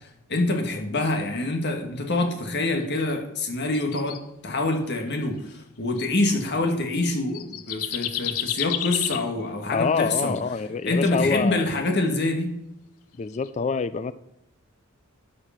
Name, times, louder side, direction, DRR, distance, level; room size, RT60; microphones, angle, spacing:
voice 1, 0.3-4.1 4.4-10.3 10.8-12.5, left 2 dB, 50° left, 3 dB, 1.6 m, -25 dB
sound 1, 2.9-3.1 3.7-4.2 5.1-5.4 6.0-6.1 6.9-7.0 7.3-9.3 11.5-11.8 13.3-13.5, left 11 dB, 80° left, 0.6 m, -31 dB
voice 2, 9.7-11.7 13.2-14.1, left 5 dB, 30° left, 14 dB, 0.3 m, -26 dB
12.0 x 5.0 x 5.8 m, 0.84 s
head